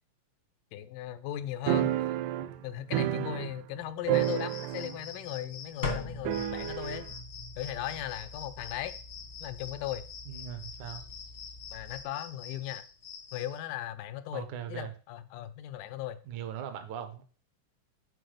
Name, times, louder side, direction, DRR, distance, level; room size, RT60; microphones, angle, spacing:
voice 1, 0.7-2.2 2.6-7.1 7.6-9.0 9.4-10.0 11.7-12.8 13.3-16.2, left 12 dB, 85° left, 2.2 m, -37 dB
sound 1, 1.7-3.8 4.1-5.1 5.3-5.4 6.3-7.1, right 12 dB, 85° right, 1.7 m, -30 dB
sound 2, 4.1-13.6, left 6 dB, 70° left, 1.0 m, -46 dB
sound 3, 5.8-12.0, left 2 dB, 40° left, 0.8 m, -42 dB
voice 2, 10.3-11.0 14.3-14.9 16.3-17.3, right 9 dB, 70° right, 2.4 m, -39 dB
8.1 x 4.7 x 6.5 m
omnidirectional pair, 3.8 m